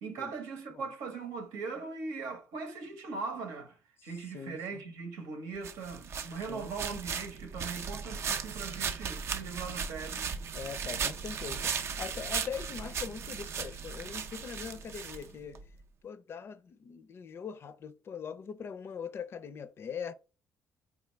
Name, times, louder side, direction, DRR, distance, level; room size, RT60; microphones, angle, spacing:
voice 1, 0.0-10.3, right 4 dB, 85° right, 0.9 m, -40 dB
voice 2, 4.3-4.8 6.5-6.7 10.5-15.6 16.0-20.1, left 7 dB, 50° left, 0.4 m, -41 dB
sound 1, 5.6-15.6, right 6 dB, 55° right, 0.5 m, -37 dB
3.6 x 2.4 x 3.1 m
supercardioid pair, 75°, 5 cm